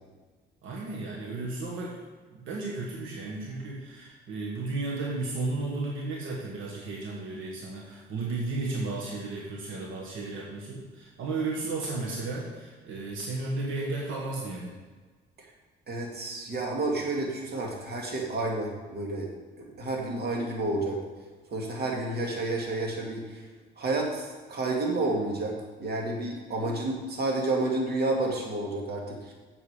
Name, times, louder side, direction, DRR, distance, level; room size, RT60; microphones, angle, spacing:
voice 1, 0.6-2.0 2.3-14.7, right 3 dB, 85° right, -2 dB, 1.5 m, -34 dB
voice 2, 15.9-19.3 19.6-21.0 21.5-23.4 23.8-29.3, right 2 dB, 55° right, 0 dB, 2.2 m, -30 dB
7.9 x 7.5 x 5.0 m, 1.4 s
cardioid pair, 90°, 20 cm